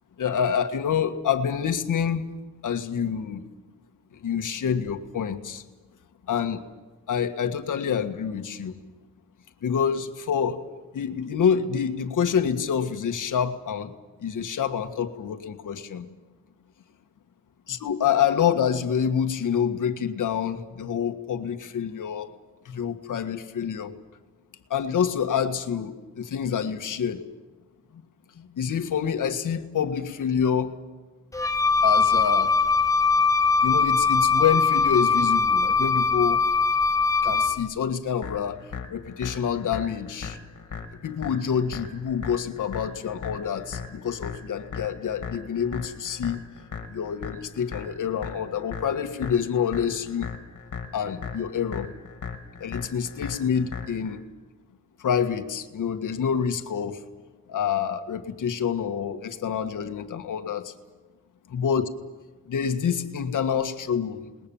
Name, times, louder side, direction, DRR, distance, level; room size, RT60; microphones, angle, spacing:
voice 1, 0.2-2.3 2.6-3.4 4.1-5.6 6.3-6.6 7.1-8.8 9.6-10.6 10.9-13.9 14.2-16.0 17.7-22.3 22.6-23.9 24.7-27.2 27.9-28.0 28.4-30.7 31.8-32.5 33.6-36.4 37.2-38.6 38.9-40.4 41.0-46.4 46.9-50.3 50.9-51.9 52.6-54.2 55.0-57.0 57.5-60.7 61.5-61.8 62.5-64.5, left 7 dB, 90° left, 7 dB, 1.7 m, -27 dB
Wind instrument woodwind instrument, 31.3-37.7, left 4 dB, 10° left, 0.9 m, -21 dB
sound 1, 38.2-54.2, left 6 dB, 75° left, 2.6 m, -38 dB
28.0 x 20.5 x 7.2 m, 1.2 s
wide cardioid pair, 165°, 30 cm